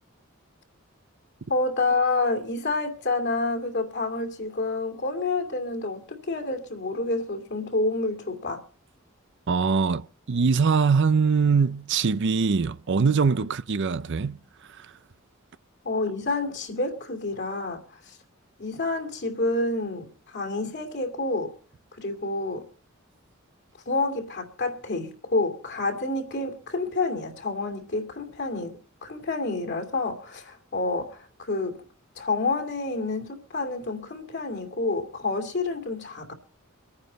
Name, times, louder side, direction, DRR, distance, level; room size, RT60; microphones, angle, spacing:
voice 1, 1.5-8.6 15.8-18.2 18.6-21.6 21.9-22.7 23.9-31.9 32.2-36.3, left 3 dB, 55° left, 2.6 m, -28 dB
voice 2, 9.5-14.4 14.8-14.9, right 5 dB, 60° right, 0.6 m, -22 dB
24.5 x 9.7 x 4.1 m
head